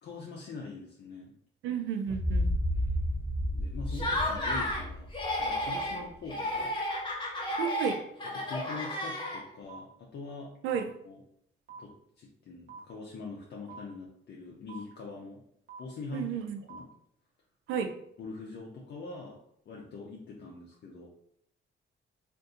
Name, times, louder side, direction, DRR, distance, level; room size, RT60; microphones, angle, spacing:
voice 1, 0.0-1.3 3.4-5.1 5.4-6.7 8.3-11.2 11.8-11.9 12.2-15.4 15.8-16.4 16.7-16.9 18.2-19.4 19.7-21.1, left 3 dB, 55° left, -3 dB, 0.6 m, -43 dB
voice 2, 1.6-2.5 7.6-8.0 10.6-10.8 16.1-16.6 17.7-17.9, right 7 dB, 85° right, 7 dB, 0.5 m, -32 dB
sound 1, 2.1-6.0, equal, 10° left, 0.3 m, -32 dB
Laughter, 3.9-4.8 5.1-6.0 6.3-9.6, left 1 dB, 25° left, 1.0 m, -32 dB
sound 2, 8.7-8.8 9.7-9.8 10.7-10.8 11.7-11.8 12.7-12.8 13.7-13.8 14.7-14.8 15.7-15.8 16.7-16.8 17.7-17.8, right 6 dB, 35° right, 0.9 m, -45 dB
2.6 x 2.5 x 3.6 m, 0.72 s
cardioid pair, 90°, 20 cm